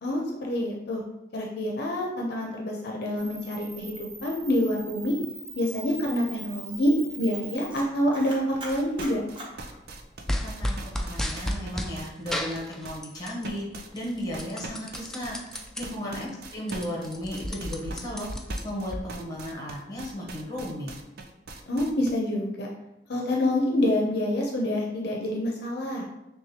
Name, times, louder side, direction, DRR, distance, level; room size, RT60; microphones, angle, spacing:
voice 1, 0.0-1.0 1.3-5.2 5.6-9.2 16.0-16.3 21.7-22.7 23.1-26.0, left 1 dB, 60° left, -1 dB, 0.6 m, -27 dB
Camera, 3.2-10.3, right 3 dB, 25° right, 0.8 m, -42 dB
sound 1, 8.7-22.2, right 3 dB, 60° right, 0.5 m, -42 dB
sound 2, 10.3-11.9 12.3-13.4 13.8-15.8 16.3-16.4 16.6-19.0, equal, 5° left, 0.3 m, -32 dB
voice 2, 10.4-18.3 18.6-20.9, equal, 20° left, -3 dB, 1.1 m, -35 dB
6.0 x 2.3 x 2.8 m, 0.93 s
head